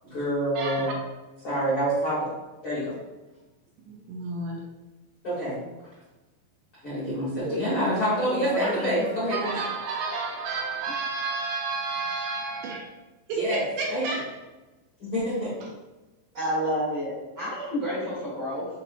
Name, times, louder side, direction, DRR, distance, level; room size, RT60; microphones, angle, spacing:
voice 1, 0.0-0.9 1.4-2.3 2.6-2.9 5.2-5.7 6.8-9.6 13.3-13.6 13.9-14.1 15.0-15.5, equal, 85° left, -11 dB, 1.1 m, -27 dB
voice 2, 0.6-1.0 3.9-4.6 9.0-12.8 13.3-14.3, right 4 dB, 85° right, -1 dB, 2.6 m, -31 dB
voice 3, 8.0-9.0 16.3-18.7, equal, 60° right, -9 dB, 1.5 m, -30 dB
6.6 x 3.1 x 2.4 m, 1.1 s
omnidirectional pair, 5.1 m